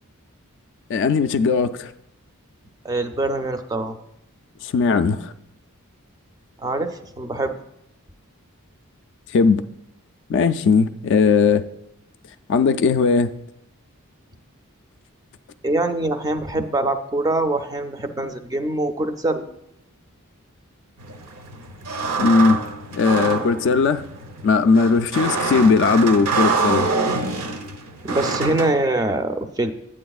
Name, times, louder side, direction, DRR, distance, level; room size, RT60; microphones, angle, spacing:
voice 1, 0.9-1.9 4.6-5.3 9.3-9.6 10.3-11.6 12.5-13.3 22.2-22.6 22.9-24.0 24.4-26.9, left 4 dB, 55° left, 11 dB, 0.3 m, -18 dB
voice 2, 2.8-4.0 6.6-7.5 15.6-19.5 28.0-29.7, right 2 dB, 15° right, 7 dB, 0.4 m, -24 dB
sound 1, 21.0-28.7, right 4 dB, 75° right, 0.8 m, -25 dB
9.2 x 8.5 x 2.3 m, 0.82 s
head